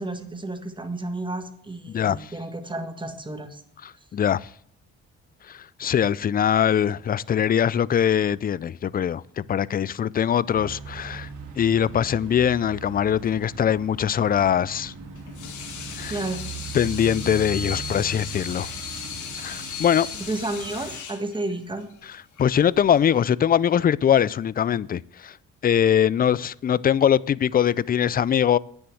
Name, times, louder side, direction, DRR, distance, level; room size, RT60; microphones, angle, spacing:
voice 1, 0.0-3.6 16.1-16.4 20.3-21.9, right 2 dB, 15° right, 1.6 m, -31 dB
voice 2, 1.9-2.3 3.8-4.5 5.5-11.3 11.6-14.9 16.0-16.2 16.7-18.7 19.4-20.1 22.4-25.3 25.6-28.6, left 9 dB, 30° left, 0.4 m, -22 dB
sound 1, 10.5-21.0, right 5 dB, 90° right, 2.8 m, -39 dB
Water tap faucet / Sink (filling or washing), 15.2-23.2, left 7 dB, 75° left, 2.0 m, -36 dB
9.7 x 7.1 x 7.6 m
cardioid pair, 90°, 30 cm